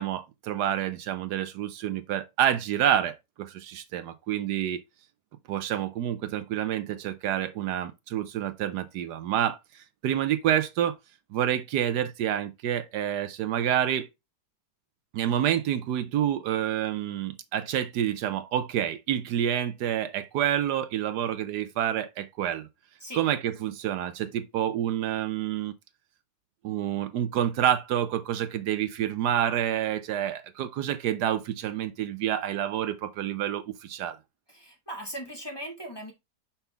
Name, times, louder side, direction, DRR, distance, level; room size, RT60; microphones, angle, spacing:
voice 1, 0.0-4.8 5.5-10.9 11.3-14.1 15.1-22.7 23.1-25.7 26.6-34.2, right 10 dB, 75° right, 1.2 m, -28 dB
voice 2, 34.5-36.1, right 1 dB, 15° left, 1.6 m, -38 dB
5.8 x 5.6 x 3.3 m
omnidirectional pair, 1.8 m